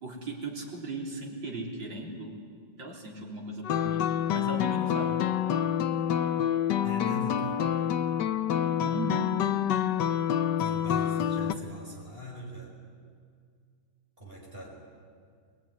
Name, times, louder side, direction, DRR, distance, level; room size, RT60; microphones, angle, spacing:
voice 1, 0.0-2.4 2.8-5.2 8.8-9.4, right 2 dB, 60° right, -1 dB, 4.5 m, -37 dB
sound 1, 3.6-11.5, left 9 dB, 65° left, 1.4 m, -27 dB
voice 2, 6.8-7.6 10.6-12.8 14.2-14.7, equal, 25° right, -1 dB, 5.1 m, -40 dB
23.0 x 23.0 x 9.8 m, 2.1 s
omnidirectional pair, 2.3 m